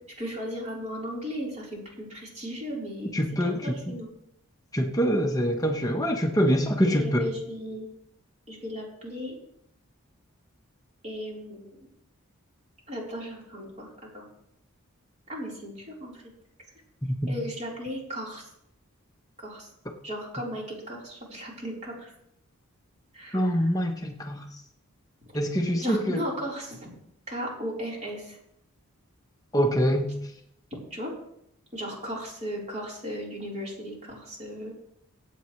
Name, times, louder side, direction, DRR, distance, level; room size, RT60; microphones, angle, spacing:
voice 1, 0.2-4.1 6.8-7.9 8.5-9.4 11.0-11.8 12.9-14.3 15.3-16.2 17.3-18.5 19.4-19.7 20.0-22.1 23.1-23.9 25.8-26.9 27.3-28.4 30.9-31.1 31.7-34.7, equal, 30° right, -4 dB, 4.0 m, -36 dB
voice 2, 3.1-3.6 4.7-7.1 23.3-24.4 25.3-26.2 29.5-30.1, equal, 15° left, 3 dB, 0.9 m, -24 dB
24.0 x 8.3 x 3.2 m, 0.76 s
head